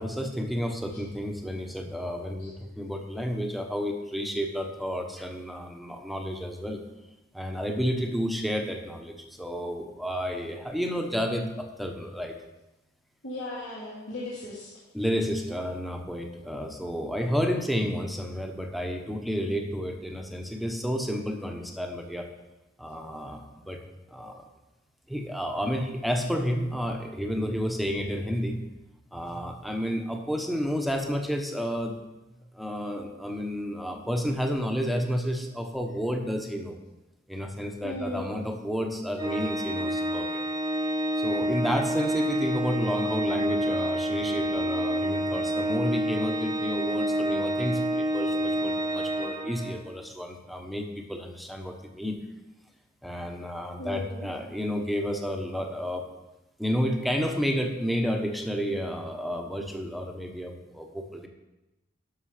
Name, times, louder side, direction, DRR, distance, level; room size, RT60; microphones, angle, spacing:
voice 1, 0.0-6.8 7.3-12.3 14.9-22.3 22.8-23.8 24.1-24.5 25.1-28.6 29.1-31.9 32.5-36.8 37.3-40.4 41.2-52.2 53.0-56.1 56.6-61.3, equal, ahead, 3 dB, 1.0 m, -31 dB
voice 2, 13.2-14.7 37.8-38.4 53.8-54.3, left 1 dB, 75° left, -9 dB, 2.8 m, -36 dB
Organ, 39.2-50.0, equal, 20° right, 1.0 m, -28 dB
11.5 x 6.3 x 5.0 m, 1.0 s
head